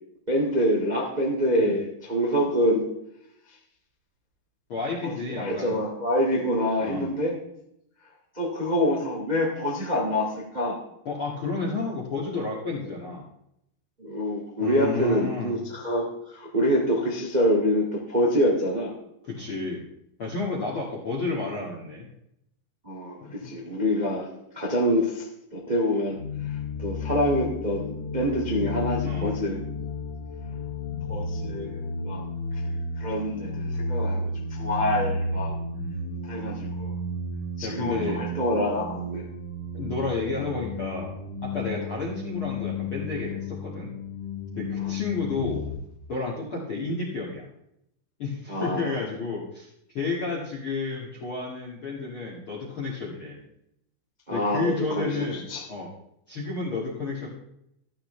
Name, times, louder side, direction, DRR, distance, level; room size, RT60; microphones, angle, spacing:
voice 1, 0.3-2.9 5.0-7.4 8.3-10.8 14.0-18.9 22.8-24.3 24.5-25.2 25.5-26.2 26.8-29.6 31.1-32.2 32.6-35.5 36.2-37.0 37.6-39.3 44.8-44.9 48.5-49.0 54.3-55.6, equal, 80° right, -3 dB, 0.4 m, -26 dB
voice 2, 4.7-5.7 6.8-7.1 11.0-13.2 14.6-15.6 19.2-19.8 20.2-22.1 23.2-23.5 29.0-29.3 37.6-38.3 39.7-41.2 41.4-43.9 44.5-45.6 46.1-47.5 48.2-53.4 54.3-55.9 56.3-57.3, left 3 dB, 45° left, -4 dB, 1.7 m, -31 dB
sound 1, 26.1-45.7, left 2 dB, 70° left, 4.6 m, -32 dB
14.0 x 13.0 x 3.4 m, 0.78 s
omnidirectional pair, 5.6 m